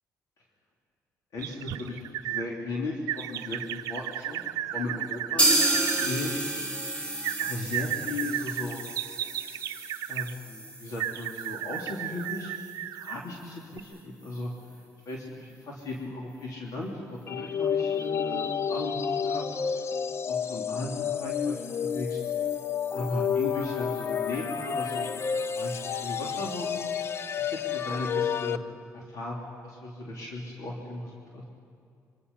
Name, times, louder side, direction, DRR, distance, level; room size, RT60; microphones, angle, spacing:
voice 1, 1.3-6.3 7.4-8.8 10.1-12.5 13.0-14.5 15.0-19.4 20.3-22.2 22.9-25.1 25.5-26.7 27.4-28.6 28.9-29.4 29.6-31.4, left 2 dB, 75° left, -3 dB, 3.3 m, -36 dB
sound 1, 1.4-2.5 3.1-6.1 7.2-10.3 11.0-13.3 13.7-13.8, right 13 dB, 90° right, 0.6 m, -34 dB
sound 2, 5.4-13.1 13.4-13.5 13.8-13.9 14.3-14.4, right 2 dB, 20° left, 4.3 m, -31 dB
sound 3, 17.3-28.6, left 7 dB, 45° left, 0.7 m, -30 dB
25.0 x 24.0 x 5.6 m, 2.3 s
cardioid pair, 105°, 6 cm